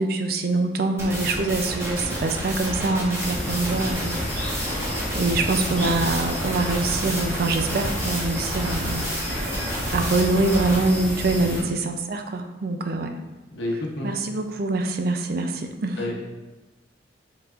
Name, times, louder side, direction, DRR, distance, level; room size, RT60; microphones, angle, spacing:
voice 1, 0.0-4.2 5.1-9.1 9.9-13.1 14.0-16.0, right 2 dB, 55° right, 6 dB, 0.4 m, -24 dB
sound 1, 1.0-10.8, equal, 15° right, 1.1 m, -30 dB
sound 2, 3.2-11.6, equal, 10° left, 1.3 m, -31 dB
voice 2, 3.4-3.9 11.6-11.7 13.5-14.2 16.0-16.1, left 1 dB, 85° left, -1 dB, 0.8 m, -30 dB
5.5 x 3.9 x 2.4 m, 1.1 s
head